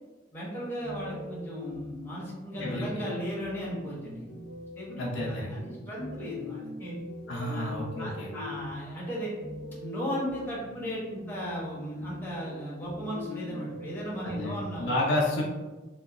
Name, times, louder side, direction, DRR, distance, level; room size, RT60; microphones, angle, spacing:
voice 1, 0.3-4.2 4.8-7.0 7.5-7.7 8.0-9.3 9.8-14.9, equal, 10° left, -7 dB, 0.8 m, -36 dB
sound 1, 0.8-14.5, left 2 dB, 75° right, 0.9 m, -42 dB
voice 2, 5.0-5.6 7.3-8.3 14.2-15.4, left 1 dB, 65° left, -3 dB, 0.5 m, -30 dB
2.9 x 2.2 x 2.3 m, 1.2 s
head